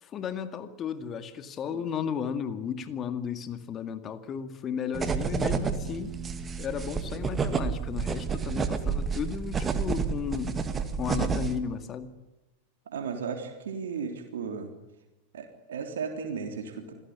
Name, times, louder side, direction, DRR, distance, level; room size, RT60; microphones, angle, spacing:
voice 1, 0.0-6.2 6.6-10.6 11.0-12.1, left 7 dB, 25° left, 10 dB, 2.2 m, -34 dB
sound 1, 4.9-11.6, right 5 dB, 20° right, 2.1 m, -30 dB
voice 2, 12.9-14.7 15.3-16.9, right 6 dB, 60° right, 5 dB, 3.5 m, -35 dB
27.5 x 17.0 x 9.6 m, 1.0 s
figure-of-eight pair, 90°, 0 cm